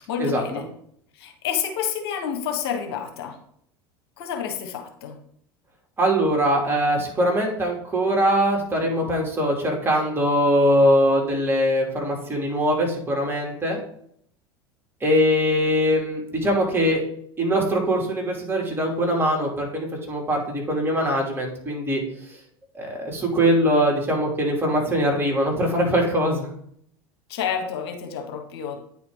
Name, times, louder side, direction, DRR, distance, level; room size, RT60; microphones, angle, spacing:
voice 1, 0.1-0.6 1.2-3.4 4.2-5.2 27.3-28.8, left 8 dB, 70° left, 4 dB, 1.3 m, -29 dB
voice 2, 6.0-13.8 15.0-17.0 17.4-22.0 22.7-26.5, equal, 15° right, -1 dB, 2.7 m, -22 dB
9.1 x 4.6 x 3.8 m, 0.67 s
hypercardioid pair, 80°, 14 cm